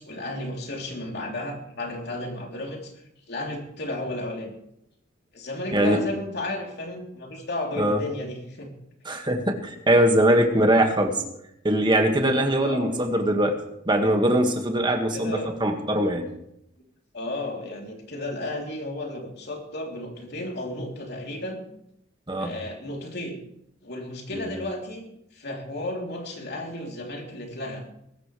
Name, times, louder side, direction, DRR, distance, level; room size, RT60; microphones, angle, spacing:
voice 1, 0.0-2.9 3.3-4.5 5.3-8.7 9.0-9.2 9.9-10.0 12.6-13.0 15.1-15.5 17.1-21.6 22.4-23.3 23.8-27.8, left 1 dB, 55° left, 0 dB, 3.4 m, -33 dB
voice 2, 5.7-6.1 7.8-8.0 9.1-11.2 11.6-13.6 13.9-16.3 22.3-22.5 24.3-24.5, right 1 dB, 25° right, 4 dB, 1.9 m, -22 dB
22.0 x 12.5 x 3.3 m, 0.76 s
head